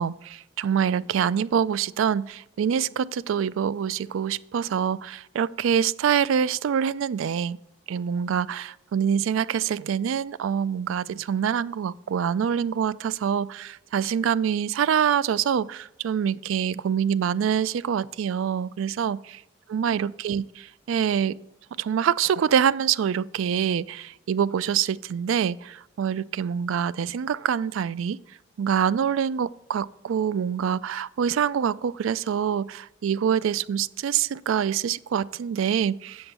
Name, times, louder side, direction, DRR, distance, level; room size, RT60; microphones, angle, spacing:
voice 1, 0.0-7.6 7.9-19.2 19.7-21.4 21.8-28.2 28.6-36.3, right 8 dB, 80° right, 0.3 m, -25 dB
7.7 x 6.9 x 6.6 m
head